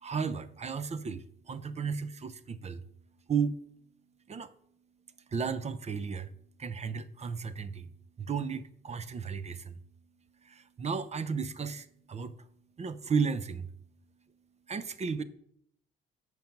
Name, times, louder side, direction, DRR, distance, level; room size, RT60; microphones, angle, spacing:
voice 1, 0.0-2.8 3.3-3.6 4.3-4.5 5.3-6.3 6.6-7.9 8.2-9.7 10.4-12.3 12.8-13.7 14.7-15.2, right 6 dB, 35° right, 0.5 m, -34 dB
7.1 x 4.6 x 5.2 m
cardioid pair, 90°, 20 cm